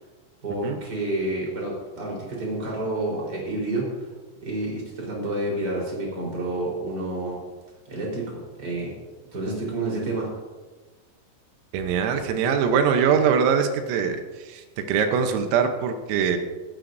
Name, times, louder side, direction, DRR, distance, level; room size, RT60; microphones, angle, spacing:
voice 1, 0.4-3.9 4.4-7.4 7.9-8.9 9.3-10.3, right 2 dB, 20° right, -3 dB, 3.9 m, -29 dB
voice 2, 11.7-16.4, right 7 dB, 85° right, 5 dB, 3.6 m, -23 dB
16.5 x 14.0 x 2.7 m, 1.3 s
omnidirectional pair, 5.9 m